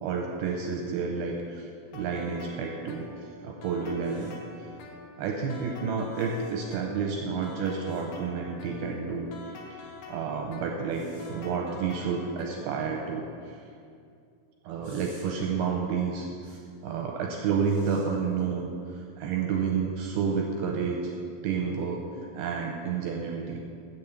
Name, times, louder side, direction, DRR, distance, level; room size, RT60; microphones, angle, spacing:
voice 1, 0.0-4.4 5.2-9.3 9.6-13.6 14.6-21.1 21.4-23.6, right 5 dB, 80° right, 1 dB, 2.3 m, -30 dB
sound 1, 1.9-12.9, left 3 dB, 80° left, 3.1 m, -47 dB
sound 2, 4.0-4.3 6.1-6.5 7.9-8.0 10.9-11.3 14.8-15.3 16.4-16.6 17.6-18.0 19.5-19.7, right 1 dB, 30° right, 0.9 m, -56 dB
8.0 x 7.0 x 6.9 m, 2.4 s
omnidirectional pair, 5.0 m